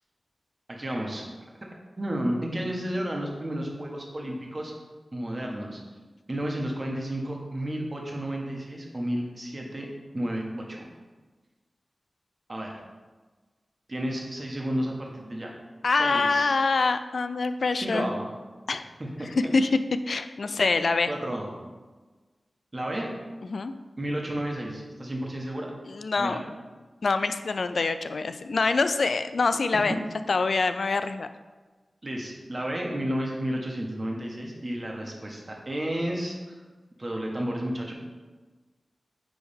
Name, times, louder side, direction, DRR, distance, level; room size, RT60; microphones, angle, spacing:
voice 1, 0.7-1.2 2.0-4.7 5.1-5.8 6.3-9.9 10.1-10.8 12.5-12.8 13.9-15.5 15.9-16.6 17.8-18.3 19.0-19.3 21.1-21.5 22.7-23.1 24.0-25.7 26.2-26.4 29.7-29.8 32.0-36.6 37.0-37.9, right 1 dB, 35° right, -1 dB, 1.3 m, -32 dB
voice 2, 15.8-18.1 18.7-18.9 19.5-19.7 20.1-21.1 23.4-23.7 25.9-26.4 27.0-30.0 30.3-31.3, left 4 dB, 75° left, 10 dB, 0.3 m, -25 dB
9.7 x 3.5 x 3.5 m, 1.3 s
wide cardioid pair, 80°, 0 cm